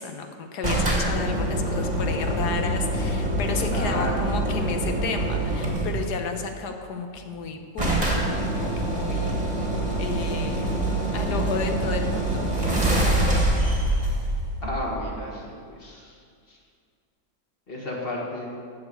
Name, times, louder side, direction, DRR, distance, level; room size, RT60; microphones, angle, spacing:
voice 1, 0.0-9.4 10.0-10.6 11.1-12.4, left 5 dB, 65° left, 5 dB, 1.5 m, -32 dB
sound 1, 0.6-6.2 7.2-7.3 7.4-7.5 7.8-15.3, right 1 dB, 25° right, 1.8 m, -25 dB
voice 2, 3.7-4.1 14.6-15.4 15.8-16.1 16.5-16.6 17.7-18.5, left 1 dB, 30° left, -2 dB, 2.1 m, -32 dB
14.0 x 4.8 x 8.1 m, 2.2 s
omnidirectional pair, 1.9 m